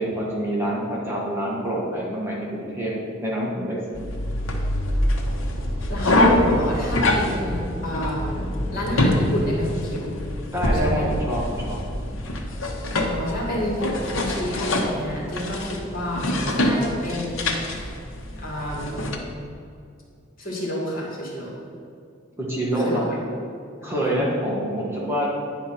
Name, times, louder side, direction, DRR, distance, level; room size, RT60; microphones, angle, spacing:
voice 1, 0.0-2.9 3.2-4.0 10.5-11.8 22.4-23.0 23.8-25.3, right 1 dB, 10° right, -6 dB, 1.4 m, -26 dB
sound 1, 3.9-19.2, left 1 dB, 75° left, 1.1 m, -25 dB
voice 2, 5.9-10.1 10.8-11.0 13.1-18.0 18.4-19.2 20.4-21.5 22.8-23.1 23.8-24.0, equal, 45° left, -4 dB, 2.3 m, -30 dB
10.0 x 4.6 x 5.9 m, 2.4 s
head